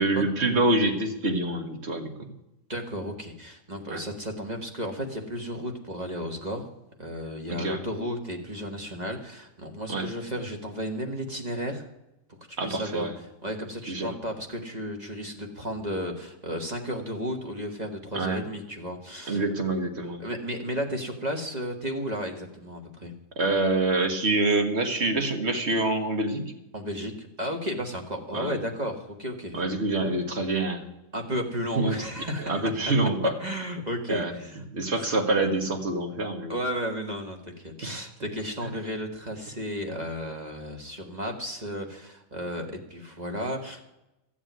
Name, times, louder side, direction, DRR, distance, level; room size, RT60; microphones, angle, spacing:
voice 1, 0.0-2.3 3.9-4.0 7.6-7.8 9.9-10.1 12.6-13.1 13.9-14.1 18.1-18.4 19.3-20.2 23.4-26.4 28.3-28.6 29.5-30.8 31.7-31.9 32.4-33.4 34.1-34.3 34.7-36.5 37.8-38.0, right 2 dB, 50° right, 6 dB, 1.8 m, -26 dB
voice 2, 2.7-6.7 7.0-11.9 12.5-19.5 20.2-23.1 26.7-29.6 31.1-32.6 33.4-34.6 36.5-43.8, equal, 30° right, 2 dB, 1.6 m, -33 dB
14.5 x 7.3 x 9.3 m, 0.92 s
omnidirectional pair, 1.5 m